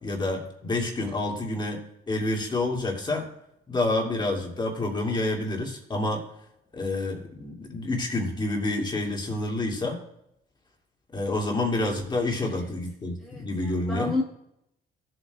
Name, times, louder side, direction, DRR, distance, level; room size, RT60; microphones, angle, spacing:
voice 1, 0.0-3.3 3.7-6.2 6.7-10.0 11.1-14.1, left 2 dB, 25° left, 0 dB, 2.4 m, -28 dB
voice 2, 13.2-14.2, left 3 dB, ahead, -5 dB, 1.5 m, -31 dB
16.5 x 7.9 x 2.4 m, 0.80 s
cardioid pair, 110°, 17 cm